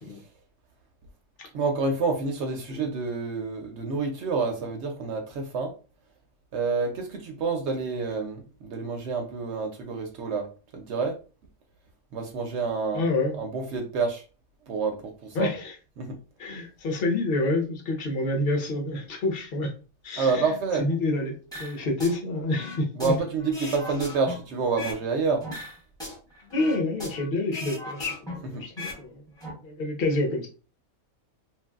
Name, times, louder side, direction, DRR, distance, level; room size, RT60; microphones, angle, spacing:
voice 1, 1.5-5.7 6.5-10.5 10.7-11.2 12.1-13.0 13.4-14.2 14.7-15.5 16.0-16.2 20.2-20.9 23.0-25.4 28.5-28.6, right 4 dB, 65° right, 4 dB, 0.7 m, -28 dB
voice 2, 12.9-13.4 15.3-15.7 16.4-19.7 20.0-23.2 23.6-23.7 26.4-30.5, left 2 dB, 50° left, 1 dB, 0.9 m, -28 dB
sound 1, 21.5-22.2 22.5-25.0 25.4-27.3 27.5-29.0 29.3-29.5, left 1 dB, 5° left, 0.7 m, -38 dB
2.9 x 2.5 x 2.3 m, 0.35 s
omnidirectional pair, 1.5 m